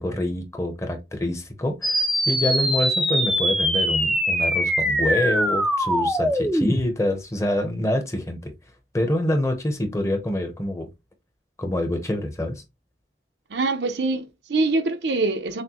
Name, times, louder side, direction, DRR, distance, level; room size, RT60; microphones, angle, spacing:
voice 1, 0.0-8.5 8.9-10.9 11.6-12.6, left 1 dB, 15° left, 0.8 m, -26 dB
sound 1, 1.8-6.8, equal, ahead, 0.4 m, -22 dB
voice 2, 13.5-15.6, right 3 dB, 75° right, 0.7 m, -24 dB
6.4 x 2.1 x 2.9 m
head